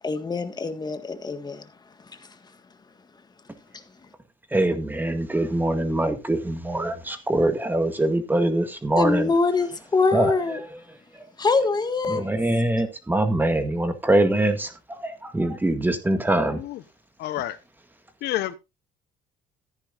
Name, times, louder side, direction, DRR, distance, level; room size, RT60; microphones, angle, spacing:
voice 1, 0.0-1.7 2.1-2.4 3.7-3.8 9.0-10.6 11.4-12.3, left 4 dB, 25° left, 1.6 m, -24 dB
voice 2, 4.5-9.3 10.1-10.3 12.1-14.7 15.0-16.6, right 1 dB, 10° right, 1.8 m, -23 dB
voice 3, 17.2-17.6 18.2-18.6, left 14 dB, 75° left, 0.8 m, -29 dB
14.0 x 9.9 x 2.5 m
cardioid pair, 110°, 17 cm